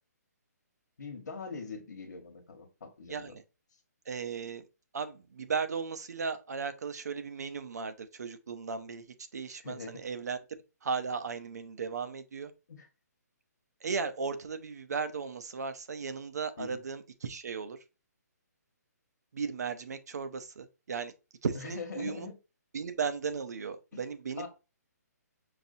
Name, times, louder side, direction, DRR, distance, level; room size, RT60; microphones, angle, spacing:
voice 1, 1.0-3.4 9.6-10.0 12.7-12.9 16.6-16.8 21.5-22.4 23.9-24.0 24.4-24.5, left 5 dB, 80° left, 1.3 m, -42 dB
voice 2, 4.1-4.6 4.9-9.1 9.3-10.4 10.8-12.5 13.8-17.8 19.3-21.1 21.4-22.3 22.7-24.5, right 5 dB, 70° right, 0.7 m, -36 dB
5.8 x 2.7 x 2.7 m
hypercardioid pair, 175°, 9 cm